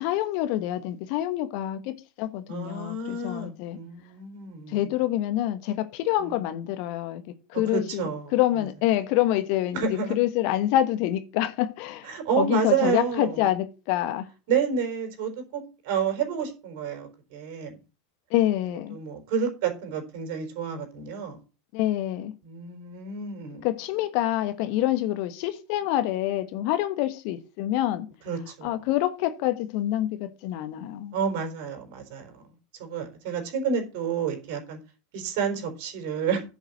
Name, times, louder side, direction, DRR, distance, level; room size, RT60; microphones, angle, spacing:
voice 1, 0.0-3.8 4.7-7.2 7.5-14.3 18.3-18.9 21.7-22.3 23.6-28.1 28.6-31.2, left 13 dB, 50° left, 1.3 m, -26 dB
voice 2, 2.5-4.9 6.2-6.3 7.7-8.3 9.7-10.2 12.0-13.5 14.5-17.8 18.9-21.4 22.4-23.7 28.2-28.7 31.1-32.4 32.8-34.8 35.1-36.4, right 6 dB, 55° right, 4.3 m, -29 dB
10.5 x 5.6 x 7.8 m
figure-of-eight pair, 85°, 0 cm